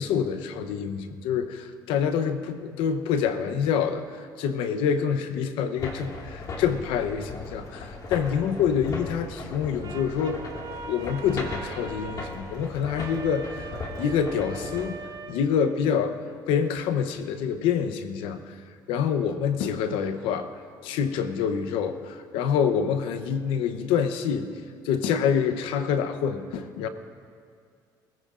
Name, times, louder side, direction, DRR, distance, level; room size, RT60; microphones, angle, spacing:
voice 1, 0.0-4.0 4.4-10.4 10.9-13.7 14.0-15.0 15.3-16.2 16.5-18.4 18.9-20.5 20.8-24.5 24.8-26.9, left 7 dB, 85° left, 10 dB, 0.8 m, -26 dB
sound 1, 5.8-14.9, left 3 dB, 45° left, 1.9 m, -38 dB
sound 2, 9.8-16.1, right 5 dB, 45° right, 1.0 m, -41 dB
21.0 x 15.5 x 2.5 m, 2.2 s
cardioid pair, 105°, 9 cm